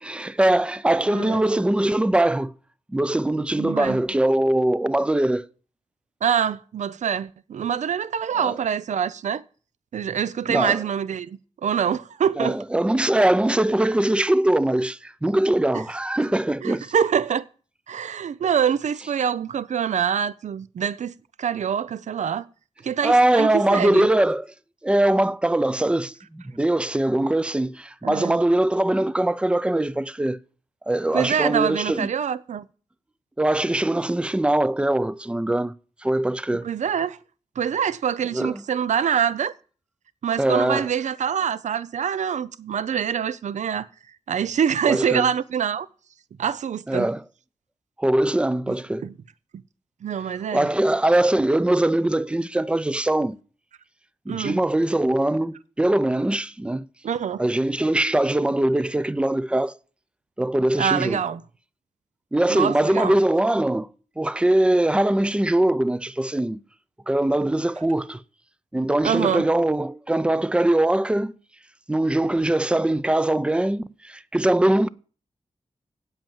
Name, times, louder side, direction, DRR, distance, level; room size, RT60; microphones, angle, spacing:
voice 1, 0.0-2.5 2.9-5.5 8.4-8.5 10.5-10.8 12.4-16.9 23.0-24.5 24.8-30.4 30.9-32.1 33.4-35.7 36.0-36.7 38.3-38.6 40.4-40.9 44.9-45.3 46.9-47.2 48.0-49.1 50.5-53.4 54.3-56.9 57.4-59.8 60.4-61.2 62.3-63.9 64.2-66.6 67.1-68.2 68.7-71.4 71.9-74.9, right 1 dB, 10° right, 0.4 m, -22 dB
voice 2, 3.6-4.0 6.2-9.4 9.9-12.6 16.6-17.4 17.9-22.4 22.8-24.1 28.0-28.4 31.1-32.7 36.6-37.2 37.6-39.5 40.2-43.9 44.3-45.9 46.4-47.1 49.0-49.1 50.0-50.7 54.3-54.6 57.0-57.4 60.8-61.4 62.5-63.2 69.0-69.4, right 8 dB, 85° right, 0.5 m, -25 dB
8.9 x 7.9 x 7.3 m
wide cardioid pair, 150°, 12 cm